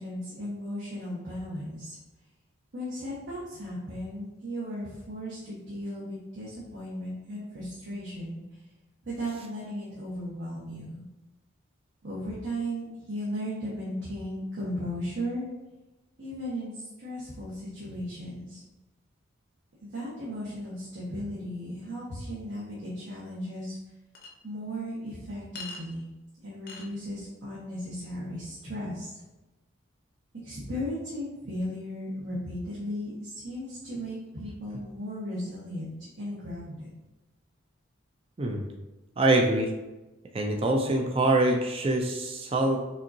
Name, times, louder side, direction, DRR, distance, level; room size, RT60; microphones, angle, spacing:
voice 1, 0.0-2.0 2.7-8.6 9.0-11.0 12.0-15.5 16.2-18.6 19.8-23.8 24.4-26.0 26.4-29.2 30.3-36.9, equal, 65° right, -9 dB, 1.2 m, -36 dB
Chink clink, 24.2-24.3 25.6-25.8 26.7-26.9, left 3 dB, 50° left, 0.6 m, -40 dB
voice 2, 39.2-39.8 40.3-42.9, right 2 dB, 25° right, 2 dB, 0.4 m, -24 dB
5.5 x 2.6 x 2.7 m, 1.1 s
head